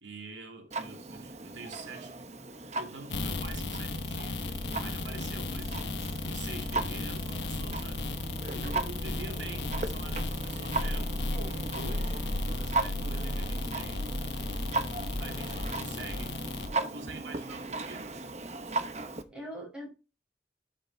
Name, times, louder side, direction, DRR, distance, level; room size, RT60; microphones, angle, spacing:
voice 1, 0.0-2.2 2.7-5.8 6.3-8.0 8.5-11.1 11.7-14.0 15.2-16.3 16.7-18.1, right 3 dB, 90° right, 2.5 m, -46 dB
Clock, 0.7-19.2, right 3 dB, 35° right, 0.9 m, -38 dB
sound 1, 3.1-16.7, left 2 dB, 80° left, 1.1 m, -34 dB
voice 2, 4.7-5.3 11.3-11.8 19.3-19.9, right 1 dB, 5° right, 5.0 m, -43 dB
12.0 x 6.4 x 2.8 m
head